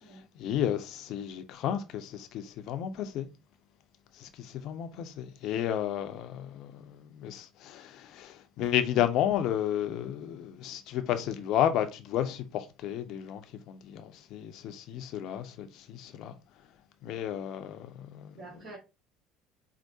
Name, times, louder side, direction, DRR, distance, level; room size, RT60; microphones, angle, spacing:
voice 1, 0.4-3.3 4.2-13.4 13.7-16.3 17.0-18.4, left 10 dB, 60° left, 0.5 m, -32 dB
voice 2, 17.9-18.8, right 3 dB, 55° right, 1.3 m, -49 dB
4.6 x 2.1 x 2.7 m
hypercardioid pair, 65°, 0 cm